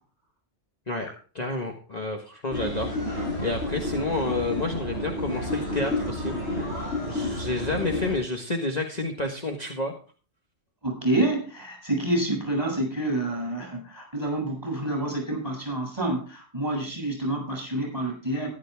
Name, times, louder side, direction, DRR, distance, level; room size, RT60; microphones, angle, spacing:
voice 1, 1.3-6.4 7.1-9.9, left 2 dB, 35° left, 2 dB, 1.6 m, -30 dB
sound 1, 2.5-8.2, left 1 dB, 60° left, 7.0 m, -30 dB
voice 2, 10.8-18.5, right 1 dB, 20° right, 1 dB, 7.6 m, -28 dB
14.5 x 11.5 x 3.5 m, 0.38 s
omnidirectional pair, 1.3 m